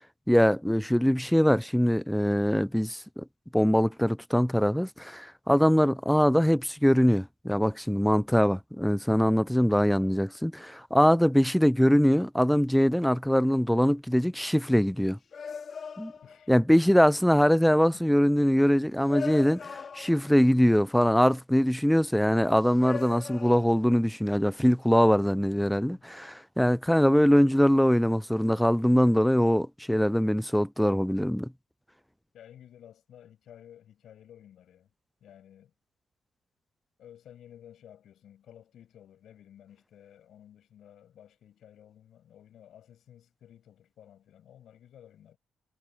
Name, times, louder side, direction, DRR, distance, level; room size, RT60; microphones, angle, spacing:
voice 1, 0.3-3.2 3.5-15.2 16.0-16.1 16.5-31.5, equal, ahead, 0.3 m, -23 dB
sound 1, 9.9-10.3 14.4-14.6 15.3-16.7 17.5-17.6 19.0-20.5 22.6-24.0, left 6 dB, 50° left, 2.2 m, -40 dB
voice 2, 16.2-16.5 17.9-18.1 32.3-34.9 35.2-35.7 37.0-45.4, left 10 dB, 70° left, 7.7 m, -53 dB
cardioid pair, 90°, 0 cm